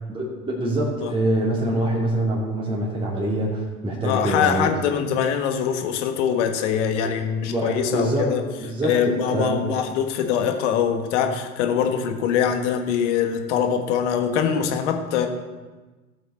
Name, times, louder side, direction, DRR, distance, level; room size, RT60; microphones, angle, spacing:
voice 1, 0.1-4.7 7.0-7.2 7.5-8.3 8.6-9.6, right 1 dB, 10° right, -5 dB, 2.5 m, -25 dB
voice 2, 4.0-8.4 8.8-15.3, left 8 dB, 50° left, 5 dB, 1.6 m, -23 dB
16.5 x 7.7 x 4.4 m, 1.3 s
figure-of-eight pair, 85°, 46 cm